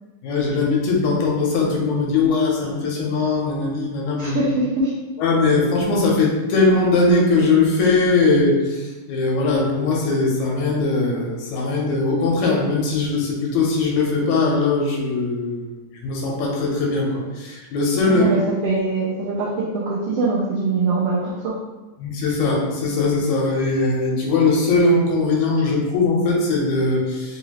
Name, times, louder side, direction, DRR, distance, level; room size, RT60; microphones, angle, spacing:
voice 1, 0.2-4.4 5.2-18.3 22.0-27.4, left 3 dB, 75° left, -1 dB, 2.0 m, -20 dB
voice 2, 4.2-4.9 18.0-21.5, right 3 dB, 85° right, -5 dB, 1.3 m, -23 dB
4.9 x 2.7 x 2.9 m, 1.1 s
omnidirectional pair, 3.5 m